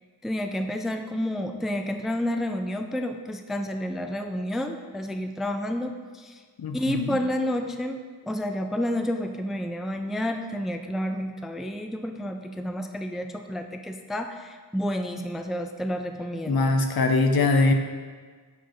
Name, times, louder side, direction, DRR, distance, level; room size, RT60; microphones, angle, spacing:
voice 1, 0.2-6.4 6.7-16.8, left 1 dB, ahead, 5 dB, 0.4 m, -30 dB
voice 2, 6.6-7.2 16.5-17.7, left 3 dB, 65° left, 5 dB, 0.8 m, -22 dB
7.1 x 4.6 x 4.5 m, 1.5 s
cardioid pair, 60°, 39 cm